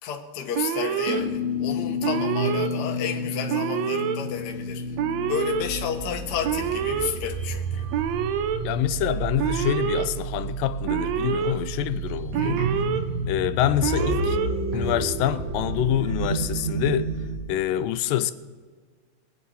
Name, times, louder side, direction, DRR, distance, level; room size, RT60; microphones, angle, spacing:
voice 1, 0.0-5.0 5.3-7.9 12.4-12.7, left 8 dB, 70° left, 1.0 m, -32 dB
Alarm, 0.5-1.2 2.0-2.7 3.5-4.2 5.0-5.6 6.4-7.1 7.9-8.6 9.4-10.0 10.9-11.5 12.3-13.0 13.8-14.5, right 9 dB, 75° right, 1.7 m, -26 dB
sound 1, 1.1-17.4, right 1 dB, 60° right, 3.8 m, -30 dB
voice 2, 8.6-12.6 13.3-14.4 14.7-17.1 17.5-18.3, left 12 dB, 85° left, 2.3 m, -26 dB
23.5 x 8.9 x 4.2 m
omnidirectional pair, 3.9 m